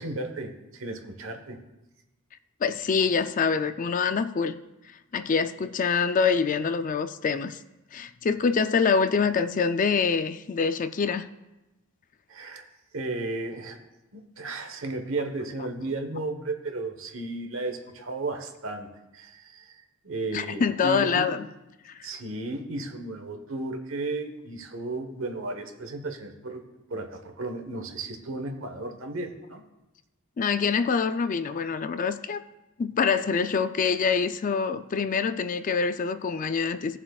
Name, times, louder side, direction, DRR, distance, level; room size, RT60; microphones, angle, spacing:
voice 1, 0.0-1.6 12.3-12.7 12.9-13.8 14.1-18.9 19.1-21.3 22.0-26.6 26.9-29.6, right 2 dB, 65° right, 6 dB, 1.1 m, -34 dB
voice 2, 2.6-4.6 5.1-7.6 7.9-11.3 20.3-21.5 30.4-32.4 32.8-37.0, left 5 dB, 40° left, 11 dB, 0.4 m, -25 dB
18.0 x 7.3 x 2.4 m, 0.99 s
head